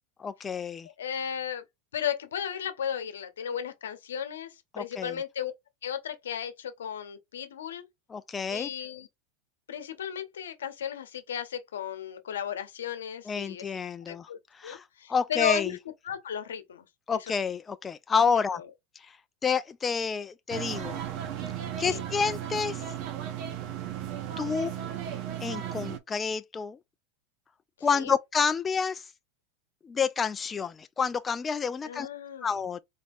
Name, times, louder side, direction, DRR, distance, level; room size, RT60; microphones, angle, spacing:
voice 1, 0.2-0.9 4.7-5.2 8.1-8.7 13.3-14.3 14.6-14.8 15.1-15.7 17.1-18.6 19.4-21.0 21.8-22.8 24.4-24.7 25.4-26.8 27.8-29.0 29.8-32.1 32.4-32.8, left 6 dB, 20° left, 0.3 m, -29 dB
voice 2, 1.0-1.6 1.9-5.5 5.8-7.9 8.5-9.1 9.7-13.7 14.1-14.4 14.6-15.8 16.0-16.8 17.1-17.3 18.5-18.7 21.8-22.0 27.9-28.1 31.8-32.5, left 9 dB, 90° left, 0.8 m, -35 dB
sound 1, 20.5-26.0, right 10 dB, 55° right, 0.9 m, -35 dB
4.1 x 3.4 x 2.5 m
hypercardioid pair, 105°, 0 cm